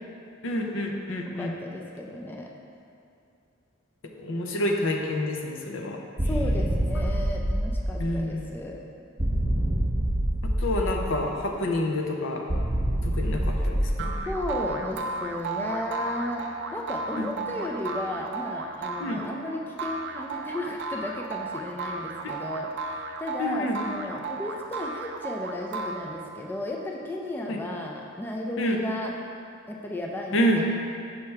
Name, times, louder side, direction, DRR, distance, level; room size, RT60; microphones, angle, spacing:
voice 1, 0.4-1.5 4.2-6.0 8.0-8.5 10.6-12.4 13.0-14.2 19.0-19.2 23.4-23.8 27.5-27.6 28.6-28.8 30.3-30.6, left 1 dB, 70° left, 2 dB, 0.6 m, -28 dB
voice 2, 1.3-2.5 6.2-8.8 14.3-16.4 16.7-29.1 29.7-30.6, left 1 dB, 10° left, -1 dB, 0.3 m, -34 dB
sound 1, 6.2-8.5 9.2-11.5 12.5-14.8, right 1 dB, 30° right, 1.1 m, -26 dB
sound 2, 14.0-26.5, right 3 dB, 60° right, 0.4 m, -34 dB
5.7 x 5.7 x 3.3 m, 2.5 s
head